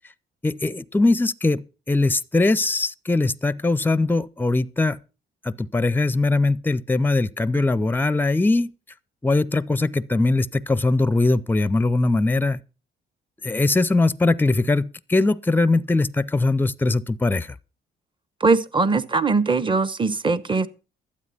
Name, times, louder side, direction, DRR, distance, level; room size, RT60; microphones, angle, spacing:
voice 1, 0.4-5.0 5.4-8.7 9.2-12.6 13.4-17.5, left 2 dB, 10° left, 0.6 m, -21 dB
voice 2, 18.4-20.7, right 4 dB, 25° right, 1.0 m, -21 dB
12.5 x 8.6 x 5.6 m
cardioid pair, 90°, 20 cm